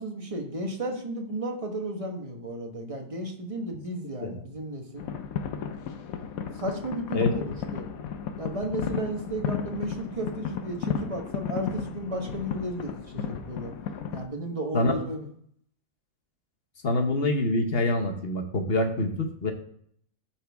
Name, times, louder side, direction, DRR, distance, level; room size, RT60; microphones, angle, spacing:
voice 1, 0.0-5.0 6.5-7.9 8.4-13.7 14.1-15.3, right 1 dB, 25° right, 3 dB, 1.1 m, -33 dB
sound 1, 5.0-14.2, left 7 dB, 80° left, 1.1 m, -34 dB
voice 2, 7.1-7.5 14.7-14.9 16.8-19.5, left 2 dB, 50° left, 5 dB, 1.1 m, -26 dB
13.0 x 4.4 x 3.4 m, 0.65 s
omnidirectional pair, 1.5 m